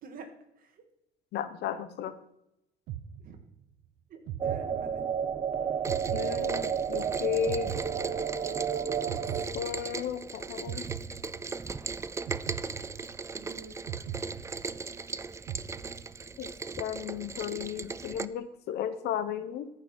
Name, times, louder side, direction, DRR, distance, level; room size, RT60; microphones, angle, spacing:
voice 1, 1.3-2.1 6.1-7.7 9.5-10.9 16.4-19.7, left 8 dB, 80° left, 12 dB, 1.0 m, -34 dB
sound 1, 2.9-3.7 4.3-5.3 5.9-7.0 7.5-8.6 9.1-10.2 10.7-11.7 12.3-13.4 13.9-15.0 15.5-16.3, right 10 dB, 80° right, 0.7 m, -40 dB
voice 2, 4.1-5.1 13.4-13.8, right 4 dB, 60° right, 5 dB, 2.0 m, -48 dB
sound 2, 4.4-9.5, right 7 dB, 35° right, 0.8 m, -31 dB
Rain, 5.8-18.3, right 4 dB, 15° right, 0.4 m, -38 dB
14.0 x 6.3 x 4.5 m, 0.82 s
cardioid pair, 110°, 17 cm